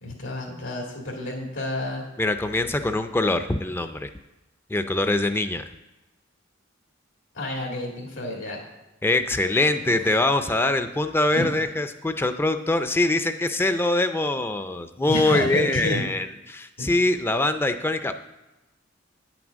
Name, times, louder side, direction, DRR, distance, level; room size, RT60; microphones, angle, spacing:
voice 1, 0.0-2.1 7.3-8.6 9.8-9.9 11.3-11.5 15.1-16.0 16.8-16.9, left 1 dB, 85° left, -2 dB, 2.0 m, -30 dB
voice 2, 2.2-4.1 4.7-5.6 9.0-18.1, left 2 dB, 10° left, 8 dB, 0.4 m, -23 dB
9.3 x 6.0 x 6.2 m, 0.99 s
head